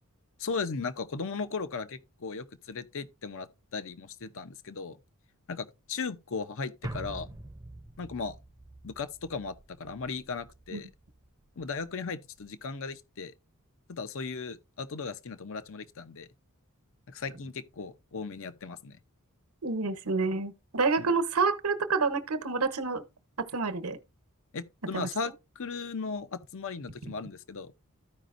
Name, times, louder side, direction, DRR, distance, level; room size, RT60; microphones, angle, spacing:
voice 1, 0.4-5.0 5.5-7.3 8.0-8.4 8.8-10.9 11.6-13.3 13.9-16.3 17.1-19.0 21.0-21.1 24.5-27.8, left 4 dB, 60° left, 0.7 m, -37 dB
sound 1, 6.8-11.3 11.6-11.7, right 1 dB, 15° right, 0.6 m, -44 dB
voice 2, 19.6-23.0 23.4-24.0 24.9-25.1, right 4 dB, 75° right, 1.0 m, -28 dB
14.0 x 5.1 x 2.5 m
head